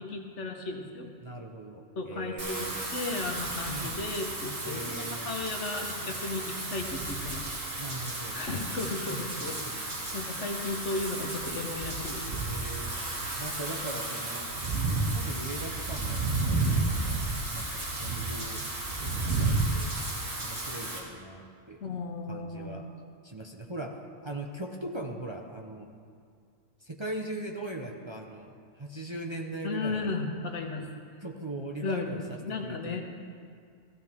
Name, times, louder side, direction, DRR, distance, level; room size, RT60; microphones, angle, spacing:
voice 1, 0.0-1.1 2.0-2.7 2.9-7.5 8.3-12.4 21.8-22.8 29.6-30.9 31.8-33.0, left 3 dB, 70° left, 2 dB, 1.6 m, -35 dB
voice 2, 1.2-3.0 3.7-4.0 4.6-5.3 7.8-8.4 9.1-10.2 12.4-13.0 13.4-14.5 15.1-17.2 17.5-19.9 20.4-21.8 22.3-22.9 23.2-25.9 26.8-30.2 31.2-33.0, right 1 dB, 25° right, 0 dB, 0.8 m, -40 dB
Wind / Rain, 2.4-21.0, right 2 dB, 75° right, 2.5 m, -32 dB
16.0 x 15.0 x 3.6 m, 2.2 s
omnidirectional pair, 1.3 m